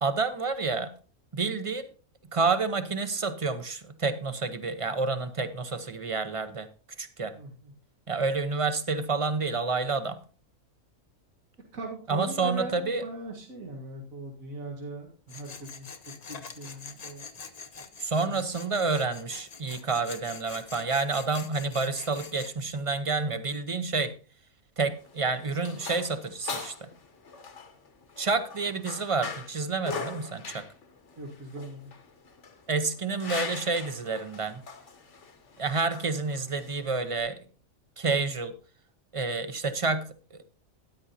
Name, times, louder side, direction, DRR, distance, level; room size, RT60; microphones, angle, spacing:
voice 1, 0.0-0.9 1.3-1.9 2.3-6.7 7.0-7.3 8.1-10.2 12.1-13.0 18.0-24.1 24.8-26.9 28.2-30.6 32.7-34.6 35.6-37.4 38.0-38.5 39.1-40.4, right 4 dB, 30° right, 11 dB, 0.7 m, -29 dB
voice 2, 7.4-7.7 11.7-15.9 16.3-17.3 18.3-18.4 31.2-31.9, right 2 dB, 90° right, 1 dB, 2.2 m, -39 dB
Tools, 15.3-22.5, left 5 dB, 35° left, 0.7 m, -45 dB
sound 1, 24.9-37.2, left 5 dB, 60° left, 1.5 m, -41 dB
13.0 x 10.0 x 2.8 m, 0.37 s
omnidirectional pair, 1.4 m